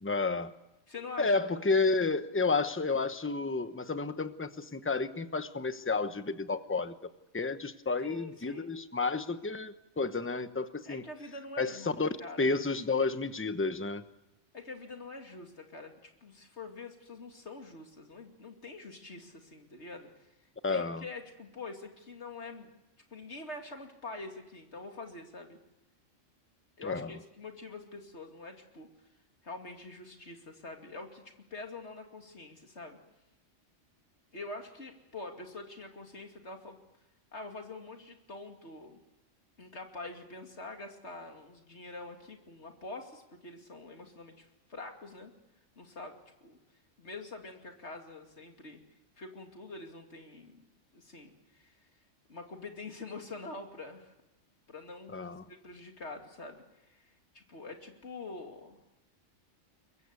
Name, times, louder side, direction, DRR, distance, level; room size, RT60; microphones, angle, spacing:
voice 1, 0.0-0.5 1.2-6.9 7.3-11.0 11.6-12.1 12.4-14.0 20.6-21.0 26.8-27.1 55.1-55.4, left 3 dB, 10° left, 11 dB, 0.8 m, -31 dB
voice 2, 0.9-1.4 8.0-8.7 10.8-11.9 12.2-12.5 14.5-20.1 20.7-22.7 23.1-25.6 26.8-28.9 29.4-31.2 31.5-33.0 34.3-36.8 37.3-39.0 39.6-45.3 45.8-46.6 47.0-48.8 49.2-50.6 50.9-51.8 52.3-54.1 54.7-57.1 57.3-58.8, left 3 dB, 60° left, 4 dB, 2.9 m, -45 dB
23.0 x 22.5 x 8.3 m, 0.94 s
omnidirectional pair, 1.3 m